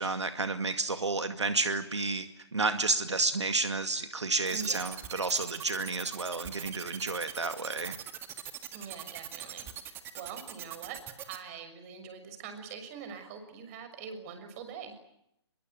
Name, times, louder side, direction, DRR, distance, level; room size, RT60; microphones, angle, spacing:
voice 1, 0.0-2.3 2.5-8.0, right 3 dB, 85° right, 9 dB, 2.2 m, -31 dB
sound 1, 4.4-11.4, right 10 dB, 15° right, 1.8 m, -41 dB
voice 2, 4.5-4.8 8.7-9.7 10.1-14.9, right 6 dB, 30° right, 8 dB, 6.3 m, -43 dB
25.0 x 23.0 x 9.3 m, 0.78 s
figure-of-eight pair, 140°, 15 cm